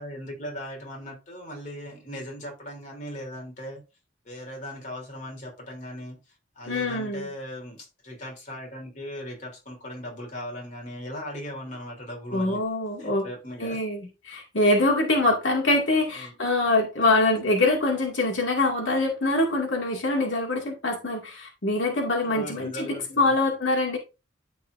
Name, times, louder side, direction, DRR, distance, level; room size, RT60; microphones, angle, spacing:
voice 1, 0.0-3.8 4.2-6.2 6.5-12.6 13.0-13.8 16.1-16.4 22.2-23.3, equal, 40° left, 3.3 m, -38 dB
voice 2, 6.7-7.3 12.3-13.3 13.6-14.0 14.2-24.0, left 2 dB, 85° left, 2.2 m, -24 dB
13.5 x 4.7 x 2.6 m
head